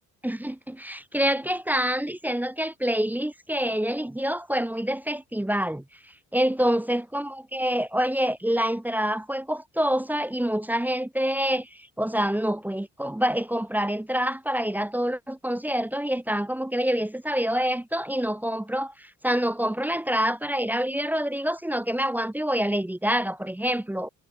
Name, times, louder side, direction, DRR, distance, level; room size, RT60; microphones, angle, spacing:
voice 1, 0.2-5.8 6.3-24.1, equal, 5° right, 0.8 m, -26 dB
cardioid pair, 90°, 30 cm